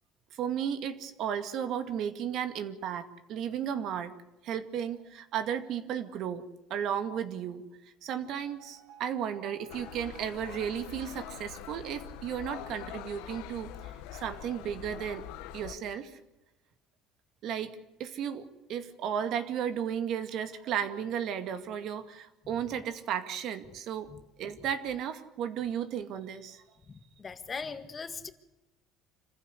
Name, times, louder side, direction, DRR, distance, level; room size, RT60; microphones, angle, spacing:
voice 1, 0.3-4.1 4.4-6.4 6.7-7.6 8.0-15.3 15.5-16.1 17.4-24.1 24.4-26.6, right 9 dB, 60° right, 2.2 m, -34 dB
sound 1, 8.3-12.6, right 9 dB, 75° right, 2.8 m, -55 dB
sound 2, 9.7-15.8, left 11 dB, 85° left, 1.4 m, -44 dB
voice 2, 26.9-28.3, left 5 dB, 25° left, 1.8 m, -40 dB
26.5 x 15.5 x 8.2 m
cardioid pair, 120°, 0 cm